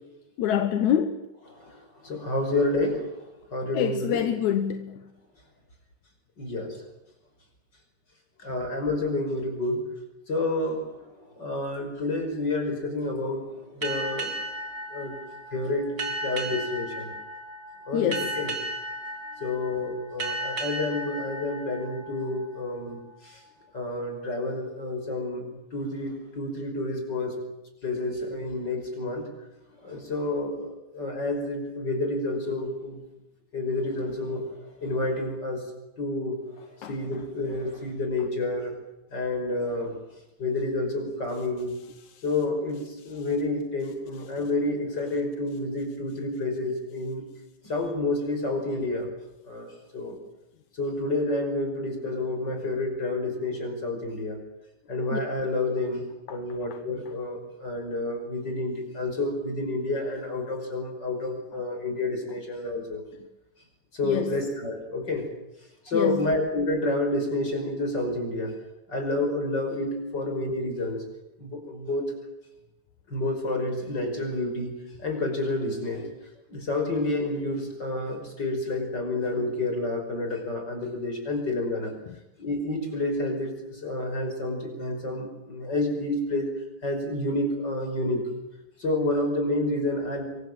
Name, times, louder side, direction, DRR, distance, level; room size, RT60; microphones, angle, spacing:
voice 1, 0.4-1.3 3.7-5.0 17.9-18.3 36.8-37.0 42.0-42.2 55.1-55.2 56.3-56.4 64.0-64.3 65.9-66.3, left 9 dB, 75° left, 2.5 m, -26 dB
voice 2, 1.5-3.2 3.5-4.2 6.4-6.8 8.4-9.9 10.3-14.3 14.9-15.2 15.5-17.1 17.9-18.5 19.4-23.4 23.7-27.4 27.8-29.3 29.8-33.0 33.5-35.6 36.0-38.7 39.1-39.9 40.4-41.8 42.2-47.2 47.6-49.1 49.5-50.2 50.8-54.4 54.9-63.0 63.9-65.3 65.8-68.5 68.9-71.0 71.4-72.1 73.1-76.1 76.5-81.9 82.4-86.5 86.8-88.3 88.8-90.2, left 2 dB, 35° left, 6.0 m, -29 dB
sound 1, 13.8-23.0, right 1 dB, 35° right, 3.6 m, -35 dB
27.0 x 23.5 x 7.5 m
omnidirectional pair, 3.4 m